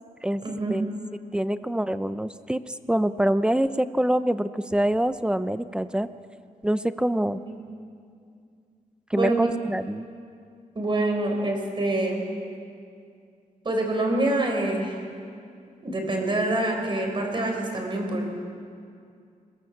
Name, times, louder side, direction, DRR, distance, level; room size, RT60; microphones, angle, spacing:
voice 1, 0.4-0.8 7.5-7.6 9.1-9.4 10.7-12.2 13.6-15.0 15.8-18.3, right 2 dB, 35° right, 2 dB, 4.6 m, -26 dB
voice 2, 1.3-6.1 6.6-7.4 9.1-10.1, right 1 dB, 5° right, 12 dB, 0.6 m, -25 dB
22.0 x 19.0 x 7.4 m, 2.3 s
wide cardioid pair, 130°, 14 cm